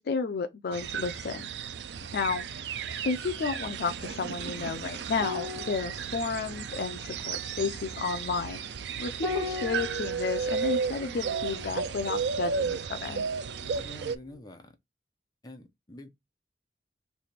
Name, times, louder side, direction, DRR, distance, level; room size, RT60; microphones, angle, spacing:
voice 1, 0.0-1.5 2.1-2.5 3.0-8.6 9.0-13.3, left 4 dB, 60° left, 0.4 m, -32 dB
sound 1, 0.7-14.2, right 6 dB, 70° right, 0.4 m, -34 dB
sound 2, 5.2-13.9 14.2-14.4, left 4 dB, ahead, 1.4 m, -42 dB
voice 2, 13.7-14.8 15.4-16.1, left 1 dB, 25° left, 0.7 m, -47 dB
3.3 x 2.4 x 4.1 m
head